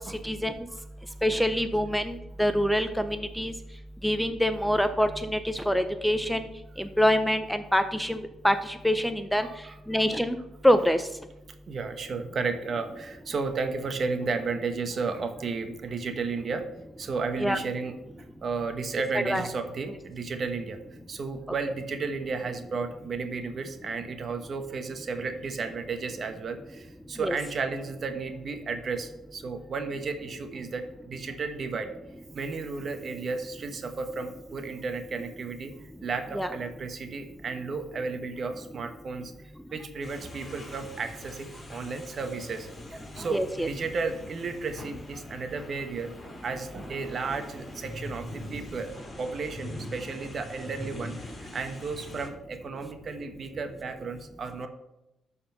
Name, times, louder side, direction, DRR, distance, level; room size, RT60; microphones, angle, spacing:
voice 1, 1.2-3.5 4.0-6.5 6.8-9.5 9.9-10.4 10.6-11.0 17.4-17.6 19.2-19.5 27.2-27.4 36.3-36.5 43.3-43.7, equal, ahead, 9 dB, 0.6 m, -25 dB
voice 2, 9.4-10.0 11.7-16.7 17.0-18.0 18.4-20.8 21.1-31.9 32.3-35.7 36.0-39.3 39.7-46.1 46.4-54.7, right 4 dB, 50° right, 7 dB, 1.2 m, -33 dB
sound 1, 40.0-52.3, left 1 dB, 25° left, 3.0 m, -43 dB
12.0 x 4.3 x 5.8 m, 0.93 s
cardioid pair, 90°, 0 cm